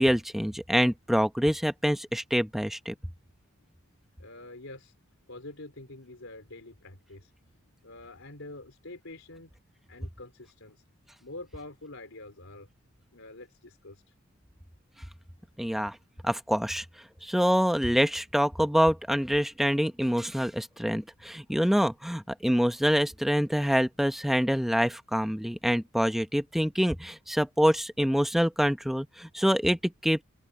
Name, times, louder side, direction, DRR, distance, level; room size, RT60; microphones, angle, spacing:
voice 1, 0.0-2.9 15.6-16.0 16.2-16.8 17.2-30.2, equal, ahead, 1.0 m, -26 dB
voice 2, 4.2-4.9 5.3-7.3 7.8-9.5 9.9-10.8 11.2-12.7 13.1-14.1, left 2 dB, 80° left, 4.0 m, -46 dB
open air
head